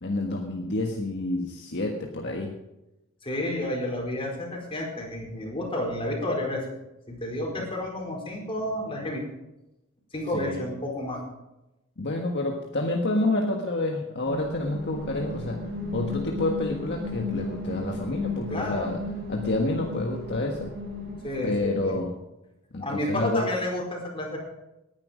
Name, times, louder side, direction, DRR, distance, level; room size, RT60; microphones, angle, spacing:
voice 1, 0.0-2.5 7.6-7.7 10.3-10.7 12.0-15.7 15.9-19.0 19.3-20.7 21.4-22.2 22.7-23.5, left 2 dB, 55° left, 1 dB, 1.6 m, -29 dB
voice 2, 3.2-6.6 7.1-9.2 10.1-11.2 18.5-19.0 21.2-21.9 22.8-24.4, left 1 dB, 25° left, 0 dB, 4.7 m, -30 dB
sound 1, 14.3-22.0, left 2 dB, 50° right, 4.9 m, -35 dB
19.0 x 10.5 x 5.1 m, 0.93 s
head